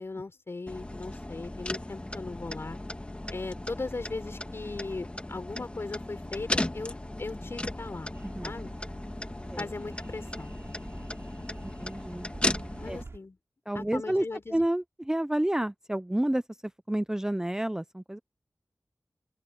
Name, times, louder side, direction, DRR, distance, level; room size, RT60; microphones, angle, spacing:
voice 1, 0.0-2.8 3.3-8.1 8.4-8.7 9.6-10.6 12.8-13.4 13.7-14.6, left 3 dB, 55° left, 4.3 m, -38 dB
sound 1, 0.7-13.0, left 1 dB, 25° left, 1.8 m, -36 dB
sound 2, 8.1-13.2, right 3 dB, 60° right, 6.3 m, -49 dB
voice 2, 11.6-12.3 12.9-13.0 13.7-14.2 14.5-18.2, right 1 dB, 10° right, 0.6 m, -30 dB
open air
wide cardioid pair, 60°, 5 cm